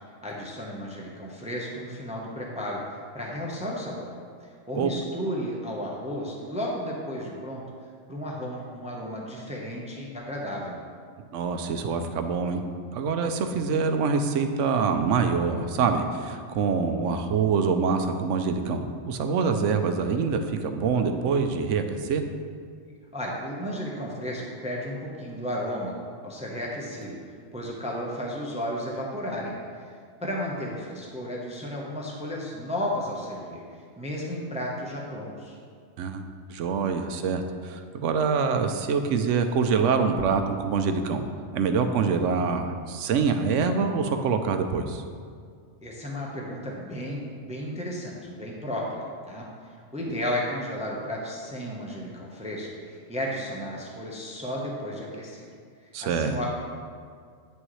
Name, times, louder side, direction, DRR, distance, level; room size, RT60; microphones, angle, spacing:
voice 1, 0.2-4.1 4.7-7.6 8.1-10.8 23.1-25.9 26.2-27.2 27.5-29.5 30.2-33.6 34.0-35.6 45.8-49.5 49.9-55.4 56.0-56.5, equal, 5° right, -3 dB, 0.8 m, -33 dB
voice 2, 11.3-12.6 12.9-22.2 36.0-36.2 36.5-41.2 41.5-45.0 55.9-56.4, right 5 dB, 75° right, 7 dB, 0.9 m, -25 dB
9.3 x 6.3 x 3.1 m, 2.1 s
omnidirectional pair, 1.3 m